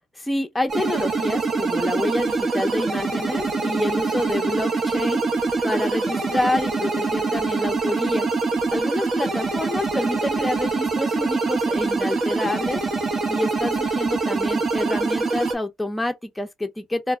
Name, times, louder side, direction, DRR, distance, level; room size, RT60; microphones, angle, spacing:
voice 1, 0.2-5.2 5.6-8.3 8.7-12.8 13.3-17.2, left 1 dB, 10° left, 0.6 m, -27 dB
sound 1, 0.7-15.6, right 3 dB, 50° right, 0.8 m, -24 dB
2.1 x 2.1 x 3.5 m
cardioid pair, 90°, 0 cm